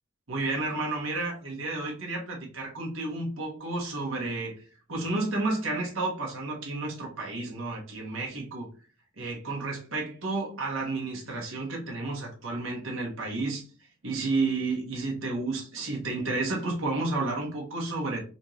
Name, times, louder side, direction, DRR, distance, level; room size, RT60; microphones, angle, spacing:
voice 1, 0.3-4.6 4.9-8.7 9.2-13.7 14.0-18.2, right 3 dB, 80° right, -1 dB, 1.3 m, -31 dB
4.2 x 2.6 x 3.1 m, 0.38 s
head